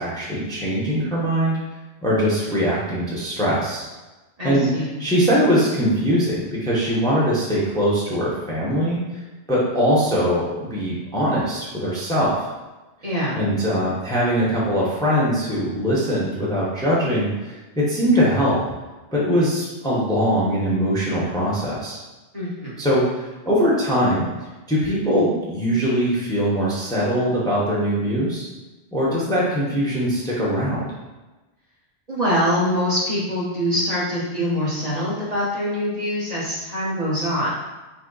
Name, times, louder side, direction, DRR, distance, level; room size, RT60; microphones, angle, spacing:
voice 1, 0.0-1.6 2.0-3.8 4.4-4.7 5.0-9.2 9.5-12.5 13.3-18.6 19.1-22.0 22.8-24.3 24.7-28.5 28.9-30.8, equal, 5° left, -7 dB, 0.9 m, -21 dB
voice 2, 4.4-4.9 13.0-13.4 22.3-22.8 32.1-37.5, equal, 35° right, -7 dB, 1.2 m, -24 dB
5.7 x 2.2 x 3.9 m, 1.1 s
omnidirectional pair, 1.2 m